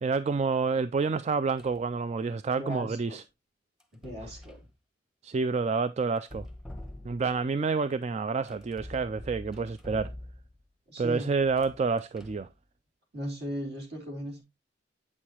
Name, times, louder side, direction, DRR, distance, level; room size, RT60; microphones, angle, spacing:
voice 1, 0.0-3.2 5.2-6.5 7.0-10.1 11.0-12.5, right 4 dB, 35° right, 0.3 m, -28 dB
sound 1, 1.6-1.9 3.8-4.7 6.2-7.5 8.5-10.7 11.4-12.5, left 1 dB, 5° right, 0.9 m, -45 dB
voice 2, 2.6-3.2 4.0-4.6 10.9-11.3 13.1-14.4, equal, 60° right, 3.4 m, -37 dB
8.5 x 6.5 x 2.8 m
head